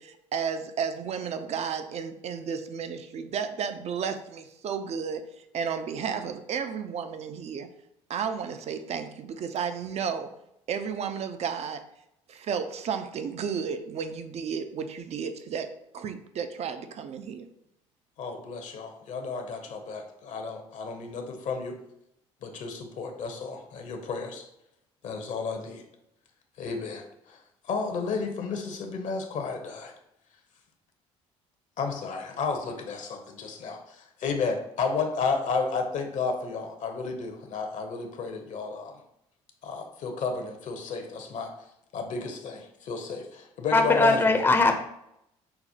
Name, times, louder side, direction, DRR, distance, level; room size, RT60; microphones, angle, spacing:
voice 1, 0.0-5.2 5.5-7.7 8.1-10.4 10.7-11.9 12.3-17.5, right 6 dB, 45° right, 9 dB, 0.4 m, -33 dB
voice 2, 18.2-21.8 22.4-24.4 25.0-25.8 26.6-27.4 27.6-29.9 31.8-39.0 39.6-41.5 41.9-44.4, left 4 dB, 55° left, 4 dB, 0.7 m, -32 dB
voice 3, 43.7-44.8, left 3 dB, 15° left, 4 dB, 0.5 m, -20 dB
5.7 x 2.1 x 2.8 m, 0.80 s
hypercardioid pair, 55°, 15 cm